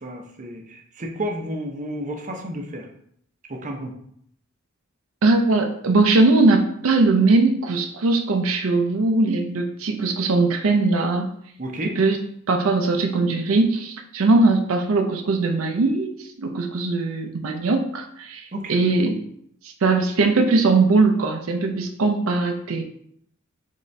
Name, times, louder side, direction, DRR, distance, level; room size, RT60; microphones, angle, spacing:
voice 1, 0.0-2.9 3.5-3.9 11.6-12.0 18.5-18.9, right 1 dB, 40° right, 2 dB, 0.6 m, -31 dB
voice 2, 5.2-11.3 11.9-12.2 12.5-19.2 19.6-22.8, right 3 dB, 80° right, 3 dB, 0.5 m, -20 dB
4.0 x 3.6 x 3.2 m, 0.68 s
head